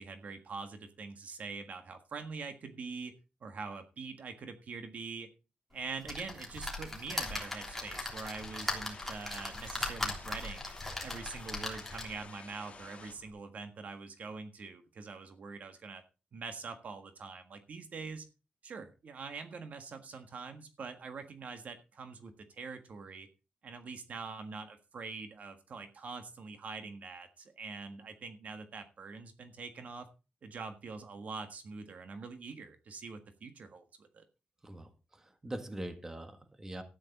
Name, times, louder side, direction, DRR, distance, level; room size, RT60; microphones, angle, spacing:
voice 1, 0.0-3.2 3.4-5.3 5.7-10.7 11.0-16.0 16.3-18.2 18.6-23.3 23.6-30.1 30.4-34.2, right 4 dB, 55° right, 8 dB, 1.5 m, -44 dB
sound 1, 6.0-12.3 12.8-12.9 13.2-13.3, left 2 dB, 5° left, 3.4 m, -39 dB
sound 2, 7.1-13.1, left 5 dB, 40° left, 2.3 m, -52 dB
voice 2, 34.6-36.8, right 1 dB, 15° right, 7 dB, 1.6 m, -43 dB
13.0 x 9.6 x 4.1 m, 0.31 s
wide cardioid pair, 170°, 3 cm